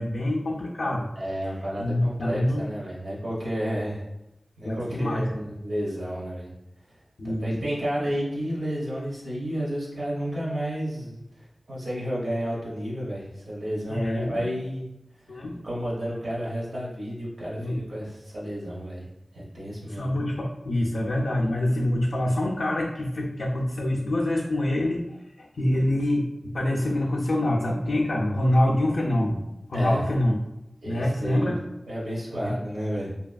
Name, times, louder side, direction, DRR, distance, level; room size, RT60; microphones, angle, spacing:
voice 1, 0.0-1.1 1.4-1.5 1.8-2.6 4.6-5.4 7.2-7.7 13.9-14.5 15.3-15.6 17.6-17.8 19.9-29.4 29.7-30.4 30.8-31.6 32.4-32.5, left 1 dB, 85° left, -4 dB, 0.3 m, -26 dB
voice 2, 1.2-4.0 4.6-6.5 7.2-11.2 11.7-14.9 15.6-19.0 19.3-20.1 29.7-30.0 30.8-31.5 31.9-33.1, equal, 85° right, -7 dB, 0.8 m, -31 dB
2.7 x 2.4 x 2.2 m, 0.89 s
wide cardioid pair, 55°, 0 cm